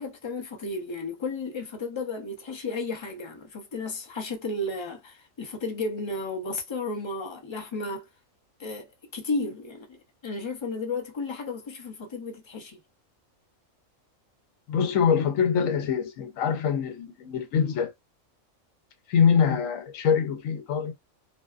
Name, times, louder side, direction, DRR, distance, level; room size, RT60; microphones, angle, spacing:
voice 1, 0.0-8.1 8.6-10.0 10.2-12.8, left 3 dB, 45° left, 0.3 m, -33 dB
voice 2, 14.7-17.9 19.1-20.9, left 7 dB, 80° left, 1.0 m, -24 dB
2.5 x 2.3 x 2.4 m
omnidirectional pair, 1.4 m